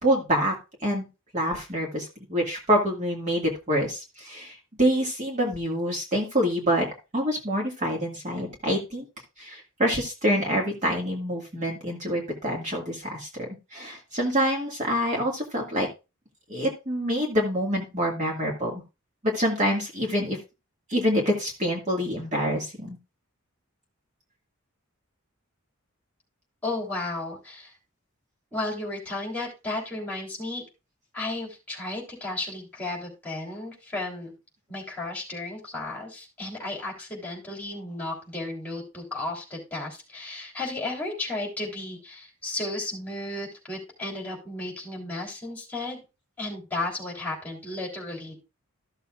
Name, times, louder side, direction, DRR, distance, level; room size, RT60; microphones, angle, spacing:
voice 1, 0.0-0.5 0.8-1.1 1.3-6.8 7.1-9.1 9.4-13.3 13.7-15.9 16.5-18.8 19.2-20.4 20.9-23.0, equal, 35° right, -1 dB, 1.8 m, -26 dB
voice 2, 26.6-27.7 28.5-30.6 31.1-34.3 34.7-46.0 46.4-48.3, left 2 dB, 10° left, -2 dB, 3.3 m, -34 dB
14.0 x 6.8 x 2.4 m, 0.28 s
head